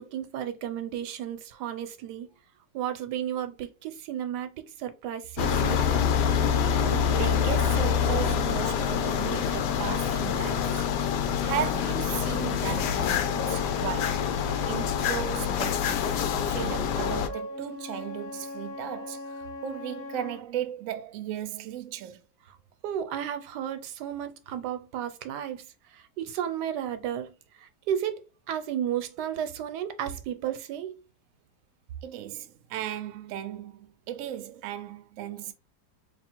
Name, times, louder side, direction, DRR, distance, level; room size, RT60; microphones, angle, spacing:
voice 1, 0.0-2.3 2.7-6.1 22.5-22.6 22.8-25.7 25.9-30.9, right 10 dB, 85° right, 1.2 m, -33 dB
sound 1, 5.4-17.3, left 7 dB, 85° left, 1.2 m, -26 dB
voice 2, 6.9-10.9 11.4-14.3 14.7-16.2 16.5-22.2 32.0-35.5, right 11 dB, 65° right, 0.8 m, -36 dB
Wind instrument woodwind instrument, 16.9-20.5, left 2 dB, 25° left, 1.4 m, -39 dB
3.4 x 2.4 x 4.4 m
omnidirectional pair, 1.8 m